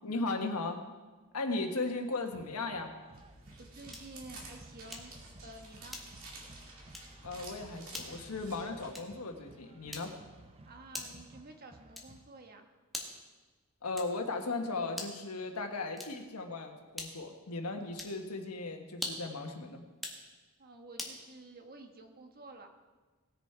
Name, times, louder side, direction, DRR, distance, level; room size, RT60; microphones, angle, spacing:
voice 1, 0.0-0.8 1.3-2.9 7.2-10.1 13.8-19.8, left 3 dB, 80° left, 4 dB, 1.4 m, -37 dB
sound 1, 1.8-12.2, right 2 dB, 25° right, 0.6 m, -57 dB
sound 2, 3.1-8.9, right 2 dB, 65° right, 2.5 m, -51 dB
voice 2, 3.6-5.1 5.4-6.0 10.6-12.7 20.6-22.7, right 2 dB, 45° right, 4 dB, 1.3 m, -51 dB
sound 3, 3.9-4.2 4.9-5.2 5.9-6.3 6.9-7.2 7.9-8.2 8.9-9.2 9.9-10.3 10.9-11.3 11.9-12.3 12.9-13.3 13.9-14.3 14.9-15.3 15.9-16.3 16.9-17.3 17.9-18.2 18.9-19.4 19.9-20.2 21.0-21.2, left 1 dB, ahead, 1.5 m, -43 dB
18.5 x 7.0 x 4.6 m, 1.3 s
head